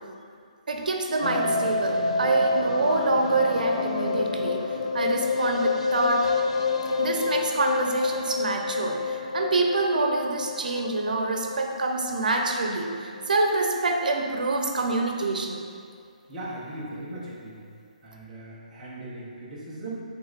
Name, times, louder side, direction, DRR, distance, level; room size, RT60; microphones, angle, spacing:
voice 1, 0.7-6.3 7.0-15.7, right 3 dB, 75° right, 2 dB, 0.8 m, -26 dB
sound 1, 1.2-13.4 13.6-13.7 14.0-14.1 14.3-14.4, left 4 dB, 50° left, 0.5 m, -28 dB
voice 2, 16.3-17.6 18.0-20.0, right 2 dB, 5° right, -11 dB, 1.0 m, -38 dB
8.4 x 3.6 x 4.0 m, 2.1 s
hypercardioid pair, 175°, 4 cm